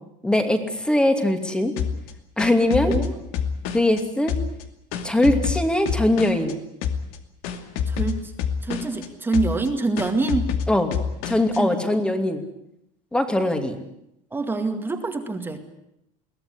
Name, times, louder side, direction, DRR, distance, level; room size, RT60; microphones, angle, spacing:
voice 1, 0.2-1.7 2.4-2.9 3.7-4.3 5.0-6.6 10.7-10.9 11.3-12.4 13.1-13.8, left 1 dB, 5° left, 7 dB, 2.7 m, -21 dB
sound 1, 1.8-4.0 4.3-6.5 6.8-7.2 7.4-9.1 9.3-9.7 10.0-11.6, left 7 dB, 70° left, 2.5 m, -27 dB
voice 2, 7.9-8.2 8.6-10.5 11.6-11.8 14.3-15.6, right 3 dB, 15° right, 5 dB, 2.2 m, -25 dB
22.5 x 16.5 x 9.8 m, 0.82 s
cardioid pair, 135°, 16 cm